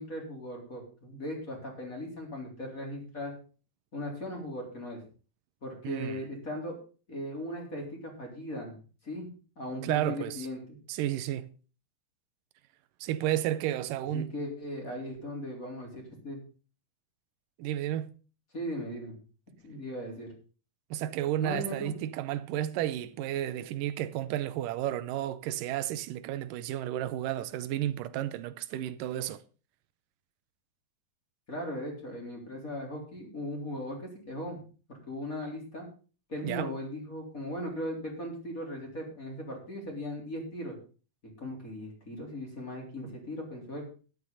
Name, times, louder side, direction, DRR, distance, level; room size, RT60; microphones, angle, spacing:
voice 1, 0.0-3.3 3.9-5.0 5.6-6.8 7.1-8.8 9.0-10.8 14.1-16.4 18.5-19.2 19.6-20.3 21.4-22.0 31.5-34.6 34.9-35.9 36.3-40.8 41.4-43.9, left 1 dB, 25° left, 3.7 m, -38 dB
voice 2, 5.8-6.2 9.8-10.5 10.9-11.5 13.0-14.3 17.6-18.1 20.9-29.4 36.4-36.7, right 12 dB, 90° right, 2.4 m, -32 dB
13.0 x 10.5 x 3.9 m
omnidirectional pair, 3.7 m